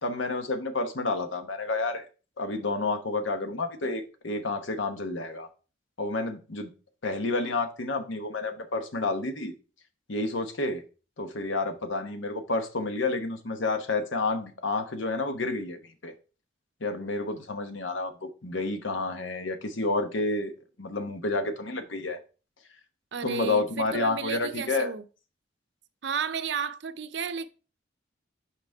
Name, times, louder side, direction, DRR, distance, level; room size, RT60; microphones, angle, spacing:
voice 1, 0.0-2.0 2.4-5.5 6.0-6.7 7.0-9.5 10.1-10.8 11.2-16.1 16.8-20.5 20.8-22.2 23.2-24.9, left 3 dB, 80° left, 1.0 m, -30 dB
voice 2, 23.1-25.0 26.0-27.5, right 6 dB, 65° right, 0.5 m, -32 dB
5.9 x 5.0 x 4.5 m
head